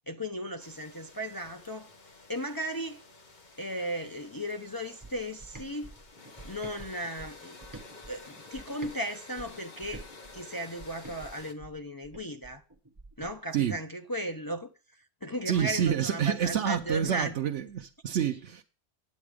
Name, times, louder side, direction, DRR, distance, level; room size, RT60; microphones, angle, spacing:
voice 1, 0.0-1.9 2.3-3.0 3.6-5.9 6.4-7.6 8.1-10.1 10.3-12.6 13.2-17.4, equal, 25° left, 0.6 m, -36 dB
sound 1, 0.6-11.5, left 3 dB, 40° left, 1.2 m, -51 dB
sound 2, 5.0-9.0 9.4-13.4, right 2 dB, 20° right, 0.9 m, -48 dB
voice 2, 15.5-18.6, right 9 dB, 80° right, 1.0 m, -28 dB
9.3 x 8.4 x 4.9 m
omnidirectional pair, 1.2 m